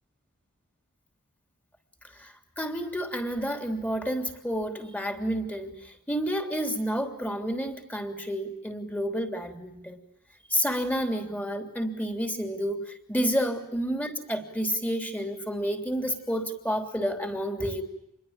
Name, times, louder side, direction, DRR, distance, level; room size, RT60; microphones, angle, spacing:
voice 1, 2.2-5.8 6.1-10.0 10.5-12.8 13.1-17.8, equal, 5° left, 6 dB, 3.2 m, -30 dB
27.5 x 22.0 x 8.8 m, 0.82 s
head